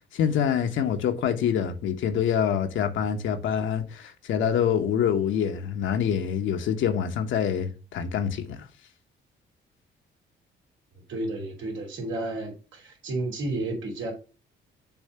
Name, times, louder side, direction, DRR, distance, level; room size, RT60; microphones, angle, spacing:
voice 1, 0.1-8.7, left 8 dB, 75° left, 0.9 m, -26 dB
voice 2, 11.1-14.1, right 2 dB, 80° right, 2.8 m, -32 dB
7.1 x 2.7 x 5.4 m
cardioid pair, 90°, 20 cm